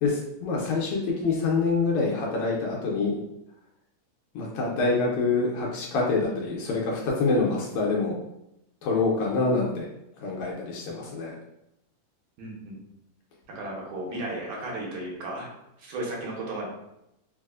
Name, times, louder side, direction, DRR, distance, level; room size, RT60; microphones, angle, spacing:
voice 1, 0.0-3.2 4.4-8.1 8.8-9.9 10.2-11.4, left 3 dB, 75° left, -3 dB, 1.7 m, -26 dB
voice 2, 12.4-12.8 13.6-15.5 15.8-16.7, right 2 dB, 75° right, -3 dB, 2.0 m, -34 dB
4.7 x 2.0 x 2.3 m, 0.84 s
omnidirectional pair, 3.5 m